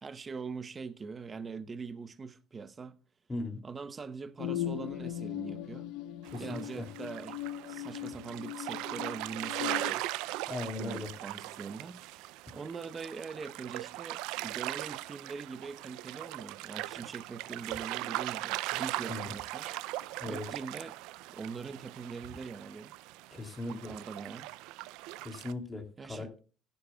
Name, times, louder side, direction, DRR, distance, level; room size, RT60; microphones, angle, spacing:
voice 1, 0.0-3.0 3.6-5.9 6.4-7.4 7.7-10.0 10.7-12.3 12.5-19.7 20.3-21.0 21.3-22.9 23.7-24.5 26.0-26.3, right 5 dB, 25° right, 0.9 m, -42 dB
voice 2, 3.3-3.6 6.3-6.9 10.5-11.1 16.9-17.0 19.1-19.3 20.2-20.4 23.3-23.9 25.2-26.3, left 2 dB, 15° left, 2.9 m, -38 dB
sound 1, 4.4-9.9, left 12 dB, 80° left, 0.7 m, -39 dB
sound 2, 6.2-25.5, right 18 dB, 85° right, 0.4 m, -39 dB
16.0 x 11.0 x 2.3 m
cardioid pair, 115°, 0 cm